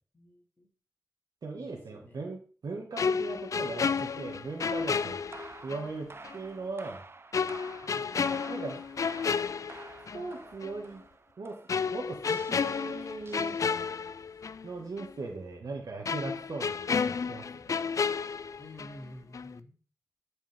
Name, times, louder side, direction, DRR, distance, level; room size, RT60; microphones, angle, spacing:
voice 1, 0.1-0.7 1.5-2.2 7.8-8.1 18.6-19.8, left 1 dB, 30° left, 0 dB, 2.4 m, -50 dB
voice 2, 1.4-5.2 5.6-7.0 8.5-8.8 10.1-11.0 11.4-11.6 11.9-13.6 14.6-17.7, right 3 dB, 70° right, 1 dB, 1.9 m, -39 dB
sound 1, 3.0-5.9 6.2-6.4 7.3-10.3 10.6-10.8 11.7-14.7 15.0-15.1 16.0-19.1 19.3-19.6, left 6 dB, 55° left, 0.4 m, -31 dB
sound 2, 3.9-14.1, right 3 dB, 40° right, 0.7 m, -50 dB
13.0 x 5.2 x 3.7 m, 0.39 s
cardioid pair, 70°, 7 cm